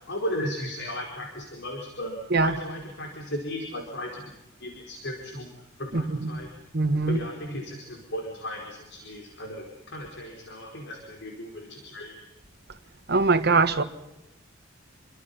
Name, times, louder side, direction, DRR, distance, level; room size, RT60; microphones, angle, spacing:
voice 1, 0.0-4.3 4.6-5.5 5.8-6.5 7.0-12.2, left 1 dB, 60° left, 4.8 m, -35 dB
voice 2, 6.7-7.2 13.1-13.8, right 3 dB, 55° right, 1.6 m, -21 dB
28.5 x 24.5 x 5.5 m
head